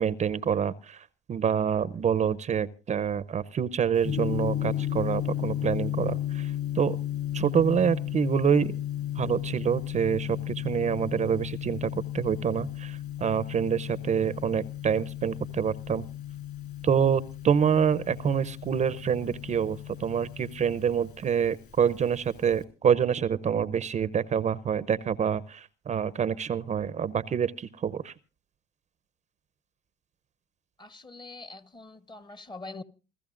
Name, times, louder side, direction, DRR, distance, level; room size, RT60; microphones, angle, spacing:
voice 1, 0.0-7.0 7.3-8.7 9.2-11.9 12.1-16.1 16.8-28.1, right 8 dB, 35° right, 0.6 m, -27 dB
Gong, 4.0-22.6, left 11 dB, 50° left, 3.9 m, -34 dB
voice 2, 30.8-32.8, left 3 dB, 20° left, 1.0 m, -43 dB
28.5 x 13.5 x 2.5 m
supercardioid pair, 95°, 21 cm